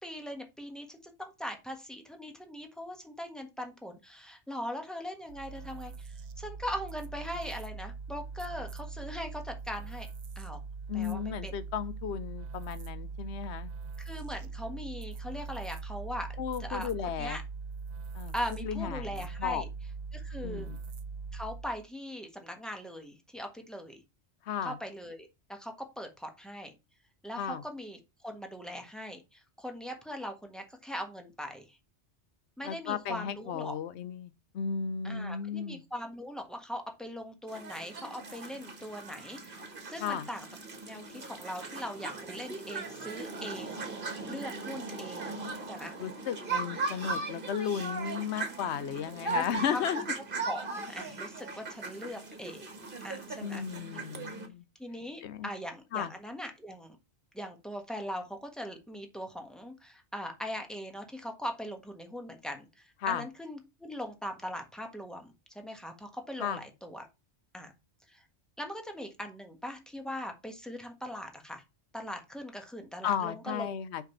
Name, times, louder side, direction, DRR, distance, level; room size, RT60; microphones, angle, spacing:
voice 1, 0.0-10.1 10.3-10.6 10.9-11.5 14.0-16.3 16.6-16.9 17.2-17.4 18.3-19.7 20.1-20.7 21.3-24.0 24.6-26.7 27.2-31.8 32.6-33.8 35.0-39.6 39.9-40.4 40.8-43.8 44.3-45.9 49.3-49.8 50.4-52.6 53.0-53.6 53.9-54.1 54.8-57.0 57.3-67.1 67.5-67.7 68.1-68.2 68.6-71.6 71.9-73.7, equal, ahead, 1.3 m, -40 dB
sound 1, 5.3-21.9, right 5 dB, 75° right, 1.0 m, -41 dB
voice 2, 10.9-13.7 16.4-17.4 18.1-18.3 18.6-19.6 20.4-20.8 24.5-24.7 27.4-27.6 32.6-35.8 40.0-40.3 46.0-50.0 53.4-54.6 55.2-55.5 55.9-56.1 63.0-63.2 66.4-66.6 73.0-74.1, left 8 dB, 75° left, 1.0 m, -34 dB
sound 2, 37.5-54.5, right 3 dB, 50° right, 1.6 m, -38 dB
5.2 x 5.2 x 5.4 m
omnidirectional pair, 1.1 m